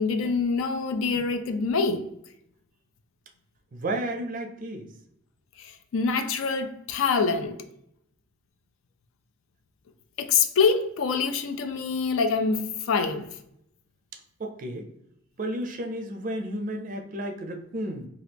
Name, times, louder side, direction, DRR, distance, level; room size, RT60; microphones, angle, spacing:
voice 1, 0.0-2.0 5.6-7.6 10.2-13.3, left 5 dB, 75° left, 0.4 m, -25 dB
voice 2, 3.7-4.9 14.4-14.9 15.4-18.1, right 1 dB, 40° right, 0.4 m, -32 dB
2.8 x 2.3 x 3.3 m
head